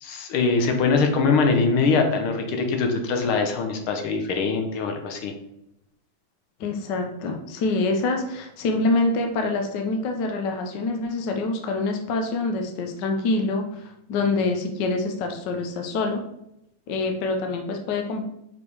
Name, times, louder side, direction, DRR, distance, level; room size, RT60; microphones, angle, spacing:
voice 1, 0.0-5.3, left 4 dB, 80° left, 4 dB, 1.8 m, -22 dB
voice 2, 6.6-16.2 16.9-18.2, left 3 dB, 65° left, 4 dB, 1.3 m, -26 dB
5.3 x 5.0 x 4.7 m, 0.81 s
omnidirectional pair, 2.3 m